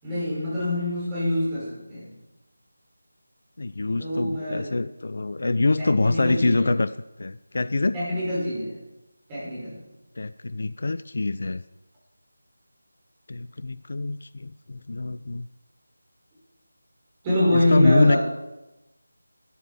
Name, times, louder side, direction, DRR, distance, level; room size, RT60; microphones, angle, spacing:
voice 1, 0.0-2.1 4.0-4.8 5.8-6.7 7.9-8.7 9.3-9.8 17.2-18.2, left 1 dB, 15° right, -8 dB, 5.5 m, -25 dB
voice 2, 3.6-6.9 7.2-8.0 10.2-11.6 13.3-15.5 17.7-18.2, left 2 dB, 50° left, 15 dB, 0.4 m, -25 dB
12.5 x 11.0 x 5.7 m, 0.99 s
figure-of-eight pair, 160°, 0 cm